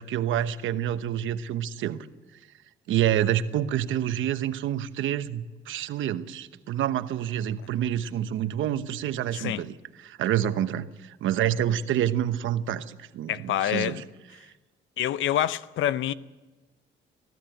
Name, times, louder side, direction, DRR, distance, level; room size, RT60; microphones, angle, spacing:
voice 1, 0.0-2.1 2.9-9.7 10.0-14.0, right 11 dB, 80° right, 1.0 m, -28 dB
voice 2, 13.3-14.0 15.0-16.1, left 12 dB, 75° left, 0.7 m, -26 dB
19.5 x 14.5 x 9.1 m
cardioid pair, 90°, 20 cm